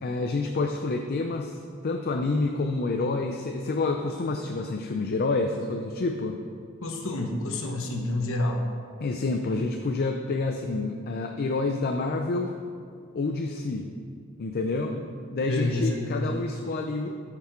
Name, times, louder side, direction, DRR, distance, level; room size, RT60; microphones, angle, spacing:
voice 1, 0.0-6.4 9.0-12.5 13.1-13.9 14.4-15.0 15.3-17.1, left 3 dB, 45° left, 4 dB, 0.5 m, -28 dB
voice 2, 6.8-8.6 14.9-15.0 15.4-16.4, left 2 dB, 65° left, 2 dB, 1.2 m, -29 dB
11.5 x 6.0 x 4.4 m, 2.2 s
head